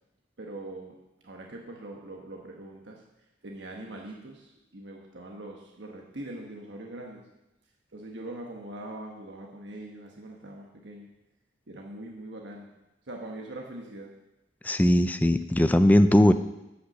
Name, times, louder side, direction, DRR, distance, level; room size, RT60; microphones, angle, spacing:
voice 1, 0.4-0.9 1.2-3.0 3.4-7.2 7.9-11.1 11.7-12.7 13.1-14.1, right 1 dB, 85° right, 0 dB, 1.2 m, -42 dB
voice 2, 14.6-16.3, left 1 dB, 10° left, 10 dB, 0.4 m, -19 dB
9.9 x 5.8 x 6.6 m, 0.93 s
head